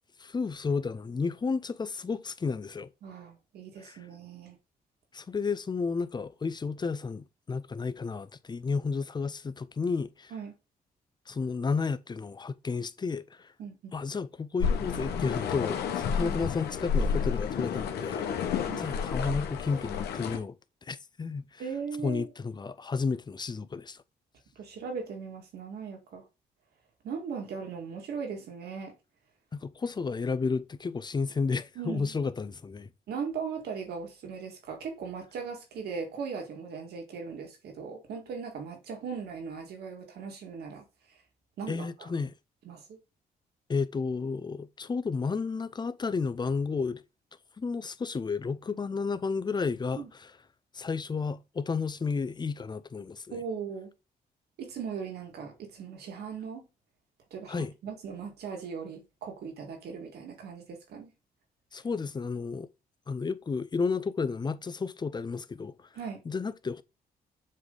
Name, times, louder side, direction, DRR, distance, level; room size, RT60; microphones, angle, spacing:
voice 1, 0.2-2.9 3.8-4.0 5.1-10.3 11.3-13.5 13.9-20.5 20.8-21.6 22.0-24.0 29.5-32.9 41.7-42.3 43.7-47.0 47.6-50.3 50.7-53.4 57.5-57.7 61.7-62.7 63.1-65.7 66.3-66.8, left 4 dB, 25° left, 0.5 m, -32 dB
voice 2, 3.0-4.6 10.3-10.5 13.6-13.9 16.2-16.4 18.6-18.8 21.6-22.3 24.6-26.2 27.0-28.9 31.8-32.1 33.1-41.2 41.6-42.1 42.6-43.0 50.0-50.1 53.3-53.9 54.6-56.7 57.3-61.1 65.9-66.2, right 6 dB, 85° right, 2.0 m, -39 dB
sound 1, 14.6-20.4, left 6 dB, 90° left, 1.0 m, -30 dB
7.5 x 3.3 x 3.9 m
cardioid pair, 85°, 16 cm